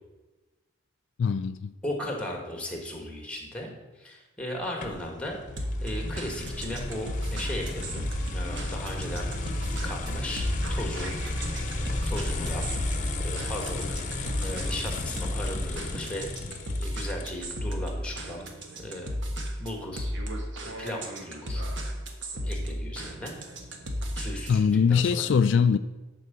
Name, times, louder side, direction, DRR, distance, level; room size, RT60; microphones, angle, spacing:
voice 1, 1.2-1.7 24.5-25.8, left 6 dB, 60° left, 0.3 m, -22 dB
voice 2, 1.8-3.7 4.0-11.1 12.1-12.7 13.2-14.0 14.4-16.3 16.8-18.5 18.8-19.1 19.6-20.1 20.6-21.6 22.4-23.3 24.2-25.3, left 1 dB, 5° left, 1.7 m, -36 dB
sound 1, 4.8-17.5, left 2 dB, 40° left, 0.9 m, -33 dB
sound 2, 5.6-24.6, equal, 60° right, 1.4 m, -34 dB
11.0 x 4.7 x 6.8 m
head